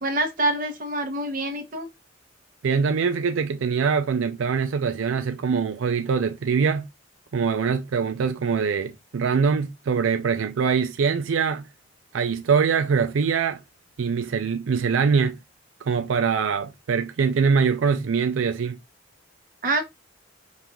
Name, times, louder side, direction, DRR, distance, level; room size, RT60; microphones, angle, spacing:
voice 1, 0.0-1.9 19.6-19.8, right 2 dB, 45° right, 1.0 m, -26 dB
voice 2, 2.6-6.9 7.3-11.7 12.1-13.6 14.0-15.4 15.8-18.8, right 6 dB, 90° right, 0.4 m, -23 dB
5.3 x 2.5 x 2.9 m
head